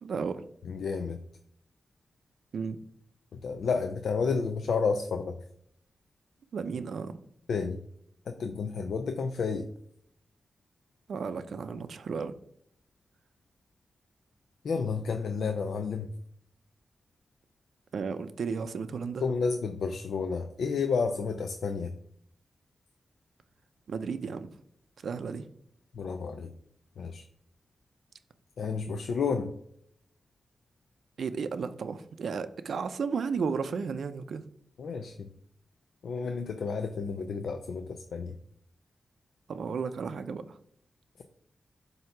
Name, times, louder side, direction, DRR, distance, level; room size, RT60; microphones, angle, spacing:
voice 1, 0.0-0.5 2.5-2.8 6.5-7.2 11.1-12.3 17.9-19.2 23.9-24.5 25.0-25.5 31.2-34.4 39.5-40.6, right 5 dB, 80° right, 11 dB, 0.5 m, -33 dB
voice 2, 0.6-1.2 3.4-5.3 7.5-7.8 8.3-9.7 14.6-16.1 19.2-21.9 25.9-26.5 27.0-27.2 28.6-29.5 34.8-35.3 36.0-38.4 41.2-41.3, left 5 dB, 90° left, 6 dB, 0.5 m, -31 dB
7.7 x 2.8 x 5.8 m, 0.68 s
wide cardioid pair, 105°, 0 cm